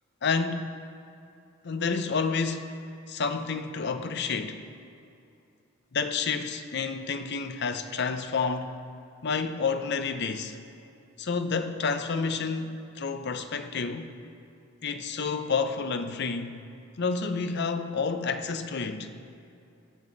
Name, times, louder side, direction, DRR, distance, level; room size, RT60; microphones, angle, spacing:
voice 1, 0.2-0.7 1.6-2.7 3.1-4.6 5.9-8.7 9.2-10.6 11.2-14.1 14.8-16.5 17.0-19.1, left 5 dB, 55° left, 0.6 m, -29 dB
19.5 x 6.9 x 4.0 m
head